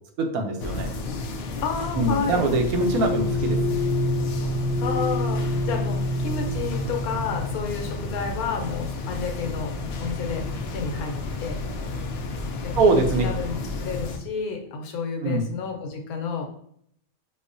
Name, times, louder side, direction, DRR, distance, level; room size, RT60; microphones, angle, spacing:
voice 1, 0.2-0.9 2.0-3.6 12.8-13.3 15.2-15.5, right 3 dB, 85° right, 4 dB, 1.1 m, -23 dB
sound 1, 0.6-14.2, left 3 dB, 70° left, 0.6 m, -32 dB
voice 2, 1.6-2.5 4.8-9.7 10.0-10.5 10.7-11.6 12.6-16.5, left 5 dB, 85° left, 3 dB, 1.2 m, -31 dB
sound 2, 2.8-8.0, equal, 65° right, 0.9 m, -27 dB
5.3 x 2.1 x 2.5 m, 0.68 s
omnidirectional pair, 1.5 m